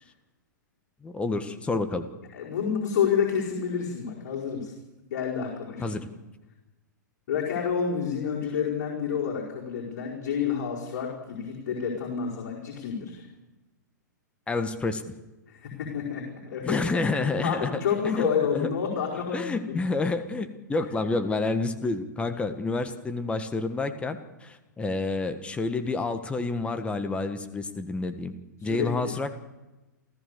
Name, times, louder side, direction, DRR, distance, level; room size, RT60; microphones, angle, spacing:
voice 1, 1.0-2.1 5.8-6.1 14.5-15.1 16.6-17.8 18.2-18.7 19.3-28.3 28.6-29.4, left 3 dB, 10° left, 8 dB, 1.5 m, -29 dB
voice 2, 2.3-4.7 5.1-6.0 7.3-13.2 15.5-16.8 17.4-19.7 28.6-29.1, left 7 dB, 55° left, -3 dB, 5.0 m, -29 dB
29.0 x 14.5 x 6.9 m, 1.1 s
figure-of-eight pair, 110°, 10 cm